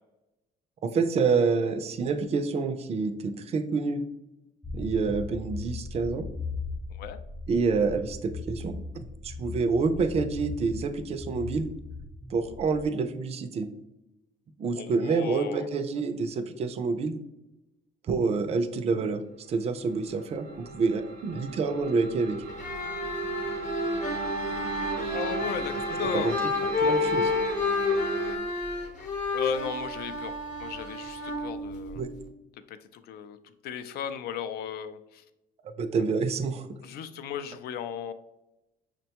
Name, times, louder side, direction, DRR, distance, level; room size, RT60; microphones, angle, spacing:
voice 1, 0.8-4.0 4.7-6.2 7.5-11.7 12.3-13.7 14.6-17.2 18.1-19.2 19.5-22.4 26.1-26.4 26.8-27.3 32.0-32.1 35.8-36.7, right 4 dB, 40° right, 8 dB, 0.4 m, -27 dB
sound 1, 4.6-12.9, left 3 dB, 10° left, 0.5 m, -38 dB
voice 2, 14.8-15.7 25.1-26.4 29.3-30.3 30.6-32.0 32.7-33.4 33.6-35.2 36.8-38.1, left 8 dB, 70° left, 11 dB, 0.4 m, -35 dB
sound 2, 19.8-28.4, right 3 dB, 80° right, 0.7 m, -36 dB
sound 3, 22.5-32.3, left 3 dB, 45° left, 0.8 m, -30 dB
6.1 x 2.2 x 2.8 m, 0.92 s
cardioid pair, 110°, 17 cm